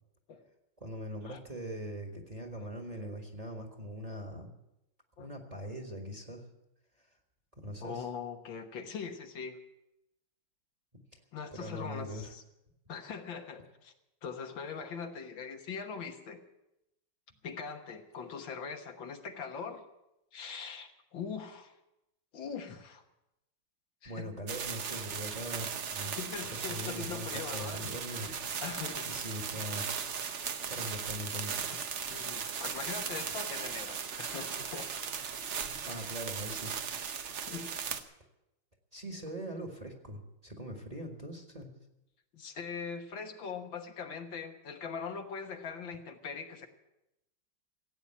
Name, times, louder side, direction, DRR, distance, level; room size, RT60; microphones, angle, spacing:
voice 1, 0.8-4.5 5.2-6.4 7.5-8.1 11.5-12.3 24.0-26.2 26.7-28.3 29.0-29.9 30.7-31.7 35.9-36.8 38.9-41.7, equal, 20° right, 3 dB, 1.6 m, -41 dB
voice 2, 7.8-9.6 11.3-12.4 12.9-13.9 14.2-16.4 17.4-19.8 20.3-21.7 22.3-23.0 24.0-24.3 26.1-28.1 28.6-29.1 30.9-31.0 31.7-31.8 32.1-34.9 37.5-37.8 42.3-46.7, left 6 dB, 75° left, 5 dB, 2.0 m, -41 dB
sound 1, 24.5-38.0, right 7 dB, 50° right, 0.9 m, -37 dB
16.0 x 8.9 x 8.7 m, 0.90 s
omnidirectional pair, 2.2 m